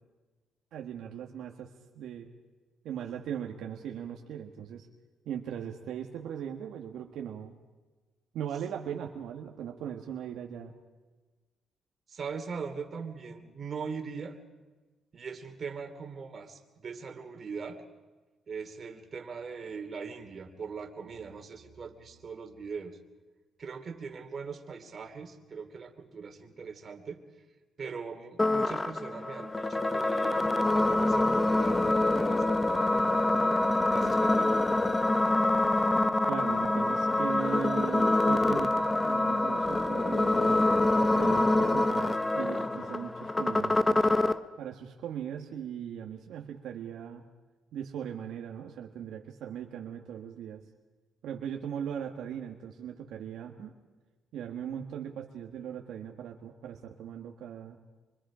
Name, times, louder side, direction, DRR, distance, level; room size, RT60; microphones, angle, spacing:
voice 1, 0.7-1.7 1.9-2.3 2.8-4.9 5.2-7.5 8.3-10.7 36.2-40.6 41.1-44.1 44.6-47.2 47.7-50.6 51.2-53.7 54.3-57.8, right 9 dB, 80° right, 1 dB, 1.6 m, -39 dB
voice 2, 12.1-14.4 15.1-17.8 18.5-23.0 23.6-27.2 27.8-33.6 33.9-34.5, right 5 dB, 45° right, 5 dB, 2.7 m, -41 dB
sound 1, 28.4-44.4, left 2 dB, 20° left, 0.9 m, -26 dB
25.0 x 24.0 x 5.1 m, 1.2 s
cardioid pair, 90°, 0 cm